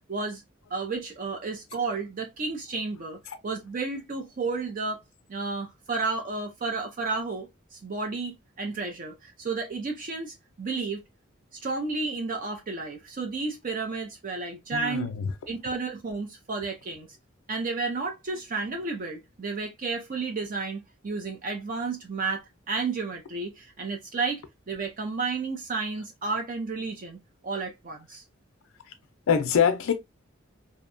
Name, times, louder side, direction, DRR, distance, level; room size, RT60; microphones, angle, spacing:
voice 1, 0.1-0.4 0.7-3.2 3.4-5.0 5.3-11.0 11.5-15.1 15.5-17.1 17.5-22.4 22.7-28.2, right 4 dB, 40° right, 0.5 m, -32 dB
voice 2, 14.7-15.3 29.3-29.9, left 7 dB, 75° left, 0.4 m, -24 dB
2.6 x 2.2 x 2.5 m
head